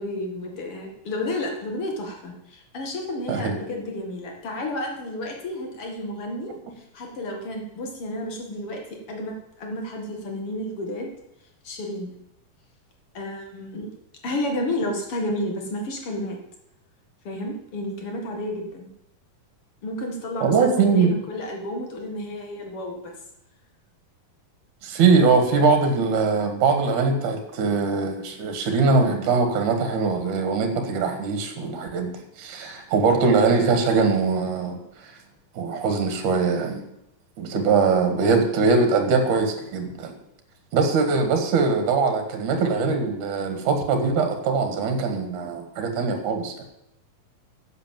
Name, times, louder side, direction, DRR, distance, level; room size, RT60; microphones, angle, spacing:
voice 1, 0.0-6.5 6.8-8.8 9.1-11.1 11.6-12.1 13.1-13.9 14.2-16.4 17.2-18.9 19.8-23.0 37.6-37.8, left 1 dB, 45° left, 2 dB, 2.4 m, -31 dB
voice 2, 20.4-21.1 24.8-34.8 35.5-36.8 37.4-40.1 40.7-46.5, right 4 dB, 65° right, 6 dB, 3.0 m, -22 dB
10.5 x 8.5 x 7.4 m, 0.83 s
omnidirectional pair, 3.9 m